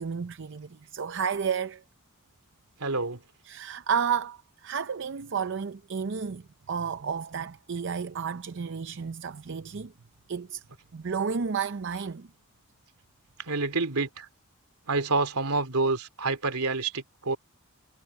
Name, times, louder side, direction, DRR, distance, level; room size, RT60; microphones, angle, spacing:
voice 1, 0.0-1.8 3.5-9.9 10.3-10.6 10.9-12.3, right 6 dB, 55° right, 0.6 m, -31 dB
voice 2, 2.8-3.2 13.4-14.3 14.9-17.4, right 3 dB, 85° right, 2.7 m, -28 dB
head